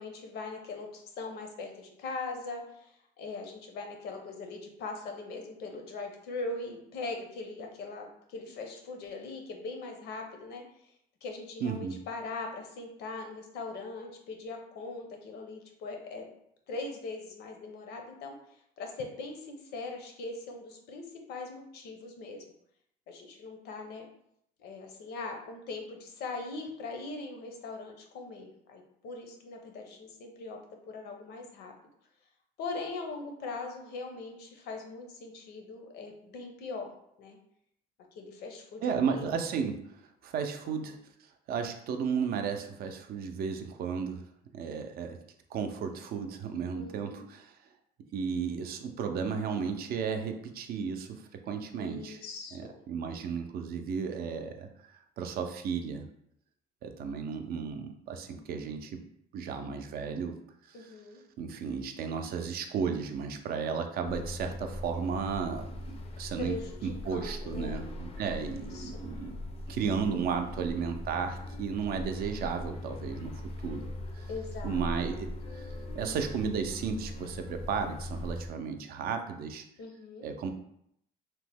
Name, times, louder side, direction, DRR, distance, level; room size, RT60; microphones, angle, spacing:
voice 1, 0.0-10.6 11.2-16.3 16.7-18.3 18.8-22.4 23.1-24.1 24.6-30.6 30.9-31.7 32.6-36.9 37.2-37.4 38.2-39.3 40.6-40.8 46.7-47.2 51.8-52.8 60.7-61.2 66.4-67.8 68.3-69.0 74.3-74.8 79.8-80.3, left 3 dB, 75° left, 3 dB, 0.6 m, -41 dB
voice 2, 11.6-12.0 38.8-44.2 44.5-45.2 45.5-47.6 48.1-52.2 52.5-54.7 55.2-56.1 56.8-59.0 59.3-60.4 60.6-60.9 61.4-66.6 66.8-69.4 69.7-73.9 74.1-74.3 74.6-79.6 80.2-80.5, right 6 dB, 65° right, 6 dB, 0.4 m, -34 dB
sound 1, 64.0-78.5, left 1 dB, 35° left, 0.4 m, -40 dB
2.9 x 2.1 x 3.3 m, 0.73 s
cardioid pair, 110°, 17 cm